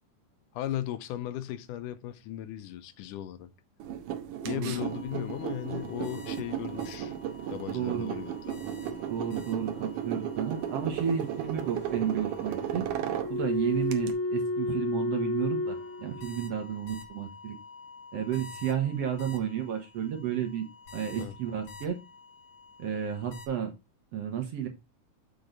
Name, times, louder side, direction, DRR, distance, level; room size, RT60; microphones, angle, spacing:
voice 1, 0.5-3.5 4.4-7.2 7.5-8.6 21.2-21.4, left 12 dB, 80° left, 2.2 m, -36 dB
sound 1, 3.8-14.1, right 9 dB, 80° right, 2.4 m, -35 dB
sound 2, 4.7-5.3 5.6-7.0 7.2-7.6 7.9-10.0 10.5-19.4 20.9-21.9 22.1-22.2 23.3-23.5, left 2 dB, 45° left, 2.4 m, -36 dB
voice 2, 7.7-8.1 9.1-12.9 13.3-17.6 18.1-20.7 20.9-22.0 22.8-23.7 24.1-24.7, right 9 dB, 60° right, 2.0 m, -32 dB
6.7 x 6.3 x 3.8 m
omnidirectional pair, 3.7 m